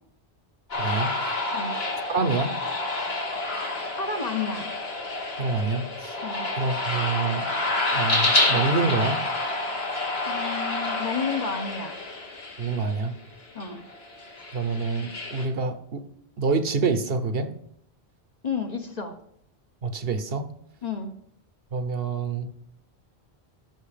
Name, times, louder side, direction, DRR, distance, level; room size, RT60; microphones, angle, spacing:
sound 1, 0.7-13.0 13.6-15.5, left 2 dB, 70° left, 2.0 m, -28 dB
voice 1, 0.7-1.1 2.1-2.5 5.4-6.2 6.6-7.5 7.9-9.2 12.6-13.1 14.5-16.1 16.4-17.5 19.8-20.5 21.7-22.5, right 4 dB, 65° right, 10 dB, 1.1 m, -27 dB
voice 2, 4.0-4.7 6.2-6.5 10.3-12.0 13.5-13.8 18.4-19.2 20.8-21.1, left 5 dB, 40° left, 5 dB, 1.1 m, -31 dB
12.5 x 6.1 x 5.1 m, 0.71 s
omnidirectional pair, 1.1 m